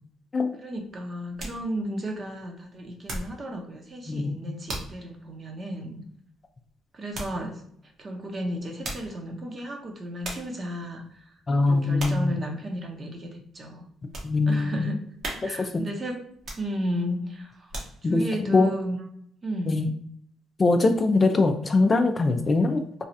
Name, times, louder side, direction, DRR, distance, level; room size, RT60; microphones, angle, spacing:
voice 1, 0.6-6.0 6.9-7.6 8.0-11.3 11.7-13.9 14.5-16.2 16.5-17.7 18.0-19.0 19.4-19.8, equal, 35° right, 2 dB, 0.8 m, -34 dB
sound 1, 0.7-3.5 3.8-4.2 4.7-5.0 5.5-5.6 7.1-7.4 8.6-9.2 9.8-9.9 10.2-10.6 11.1-11.4 12.0-12.3 12.8-12.9 13.5-14.4 14.8-14.9 15.2-15.8 16.3-17.0 17.5-18.2 18.7-18.8, right 1 dB, 60° right, 1.0 m, -38 dB
voice 2, 4.1-4.4 11.5-12.3 14.2-14.8 15.4-15.5 18.0-18.7 19.7-19.9 20.6-23.0, left 3 dB, 35° left, 6 dB, 0.4 m, -22 dB
3.1 x 2.3 x 2.7 m, 0.69 s
supercardioid pair, 75°, 0 cm